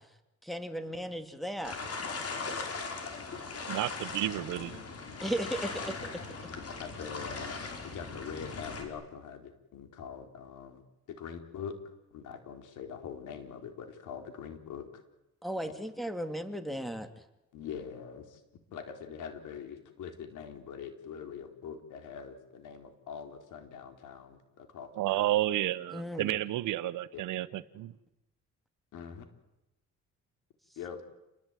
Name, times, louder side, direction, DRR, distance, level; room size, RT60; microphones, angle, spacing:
voice 1, 0.4-1.7 5.2-5.9 15.4-17.1 25.9-26.3, right 1 dB, ahead, 3.0 m, -35 dB
sound 1, 1.6-8.8, left 4 dB, 50° left, 5.8 m, -39 dB
voice 2, 3.7-4.8 25.0-27.9, right 15 dB, 85° right, 1.1 m, -31 dB
voice 3, 6.8-10.8 11.1-14.9 15.7-15.8 17.5-18.4 18.7-25.3 27.1-27.2 28.9-29.2 30.8-31.1, left 7 dB, 85° left, 4.1 m, -43 dB
29.0 x 21.0 x 9.2 m
cardioid pair, 90°, 30 cm